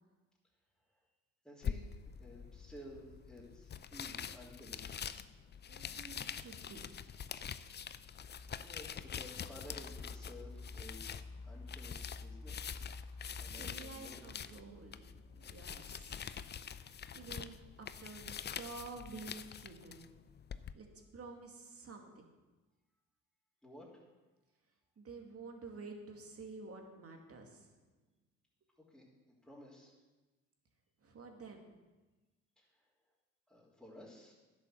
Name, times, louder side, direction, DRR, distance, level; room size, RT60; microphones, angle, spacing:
voice 1, 1.4-1.8 2.2-5.1 8.6-11.1 11.4-12.9 13.4-14.3 15.5-15.7 23.6-24.0 28.9-29.1 29.4-29.9 32.5-32.6 33.5-34.3, left 1 dB, ahead, -9 dB, 3.4 m, -54 dB
sound 1, 1.6-20.7, left 8 dB, 30° left, 0.5 m, -45 dB
voice 2, 5.7-6.8 13.2-15.1 15.3-16.3 17.1-20.1 20.7-20.9 21.1-22.3 25.0-27.8 31.0-31.7, right 4 dB, 45° right, 3 dB, 2.4 m, -50 dB
sound 2, 7.9-16.5, left 3 dB, 80° left, 1.8 m, -51 dB
10.5 x 7.8 x 6.4 m, 1.2 s
hypercardioid pair, 60°, 34 cm